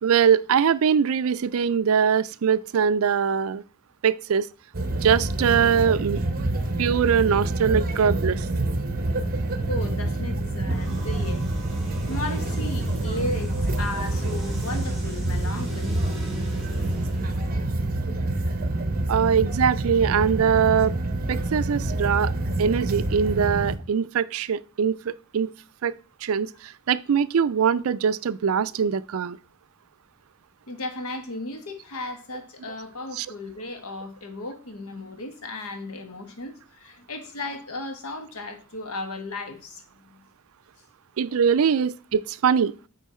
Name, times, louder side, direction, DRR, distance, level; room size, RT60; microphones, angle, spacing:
voice 1, 0.0-3.6 4.0-4.5 5.0-6.2 6.8-8.5 19.1-20.9 21.3-22.3 22.6-25.5 25.8-25.9 26.2-29.4 33.2-33.3 41.2-42.9, right 7 dB, 70° right, 0.4 m, -22 dB
sound 1, 4.7-23.8, right 2 dB, 45° right, 0.9 m, -27 dB
voice 2, 9.7-11.5 12.1-16.0 30.7-40.2 41.8-41.9, left 2 dB, 75° left, 1.2 m, -35 dB
sound 2, 10.7-17.6, equal, ahead, 2.6 m, -42 dB
8.2 x 4.5 x 4.3 m
head